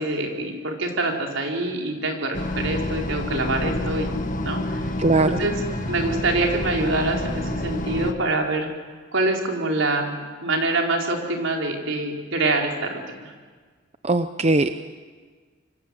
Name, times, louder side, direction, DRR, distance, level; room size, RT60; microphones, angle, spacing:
voice 1, 0.0-4.1 4.4-4.9 5.2-5.5 5.9-8.7 9.1-13.3, right 2 dB, 75° right, 1 dB, 4.5 m, -25 dB
sound 1, 2.3-8.1, left 1 dB, 40° left, 1.6 m, -28 dB
voice 2, 5.0-5.4 14.0-14.8, right 2 dB, 30° right, 9 dB, 0.7 m, -20 dB
26.5 x 24.0 x 7.8 m, 1.5 s
head